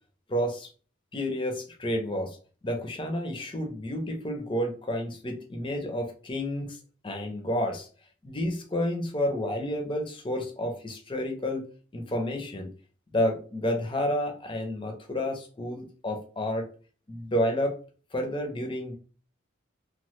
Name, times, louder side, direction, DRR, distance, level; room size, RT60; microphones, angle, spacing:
voice 1, 0.3-0.7 1.1-2.4 2.6-6.8 7.0-7.9 8.2-11.6 11.9-12.7 13.1-16.7 17.1-17.8 18.1-18.9, left 1 dB, 25° left, 3 dB, 0.5 m, -30 dB
3.1 x 2.1 x 3.0 m, 0.38 s
head